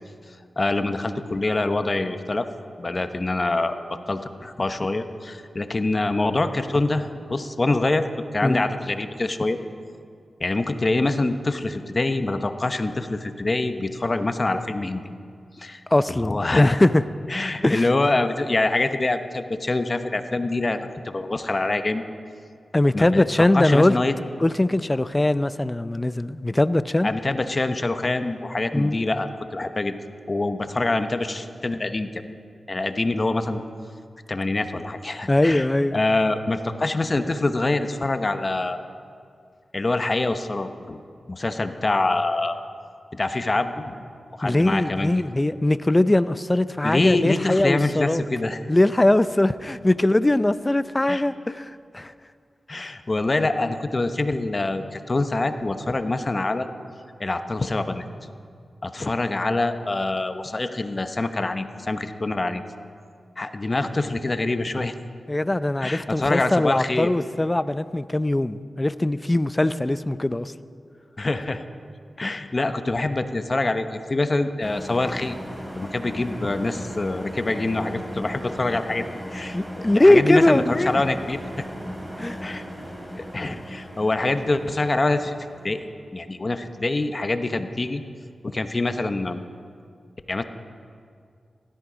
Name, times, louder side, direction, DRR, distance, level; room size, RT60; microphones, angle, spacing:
voice 1, 0.6-2.5 2.8-3.8 4.1-8.1 8.3-9.6 10.4-15.0 15.6-15.8 16.1-16.8 17.3-22.0 22.9-23.3 23.5-24.2 27.0-29.9 30.3-32.2 32.7-33.6 34.3-35.7 35.9-38.8 39.7-41.0 41.3-42.6 43.1-44.0 44.3-45.1 46.8-48.6 51.1-51.2 52.7-56.7 57.2-58.3 58.8-62.6 63.4-64.9 65.8-67.1 71.2-71.6 72.2-75.4 75.7-79.1 79.3-81.7 82.4-82.6 83.1-85.4 85.6-85.8 86.1-88.0 88.4-89.4 90.3-90.4, left 2 dB, 40° left, 8 dB, 0.9 m, -25 dB
voice 2, 15.9-17.0 17.6-17.9 22.7-24.0 24.4-27.1 28.7-29.0 35.3-36.0 44.4-48.2 48.7-52.1 65.3-70.5 79.5-81.0 82.2-82.4, left 1 dB, 20° left, 14 dB, 0.5 m, -21 dB
sound 1, 74.6-85.8, equal, 15° right, 3.4 m, -37 dB
16.5 x 13.0 x 5.1 m, 2.3 s
cardioid pair, 60°, 0 cm